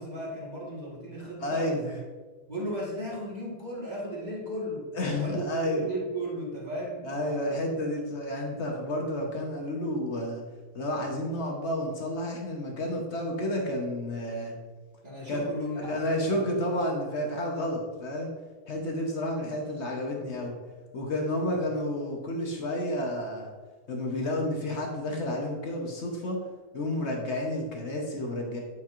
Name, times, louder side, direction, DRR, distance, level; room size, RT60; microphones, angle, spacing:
voice 1, 0.0-1.9 2.5-4.9 5.2-7.5 15.0-16.5 21.5-21.6, equal, 20° right, -6 dB, 1.4 m, -36 dB
voice 2, 1.4-1.8 4.9-5.8 7.0-10.4 10.7-14.5 15.3-15.5 15.8-18.3 18.7-20.5 20.9-23.5 23.9-26.4 26.7-28.6, left 1 dB, 55° left, 0 dB, 0.8 m, -30 dB
8.8 x 4.7 x 2.5 m, 1.4 s
omnidirectional pair, 2.3 m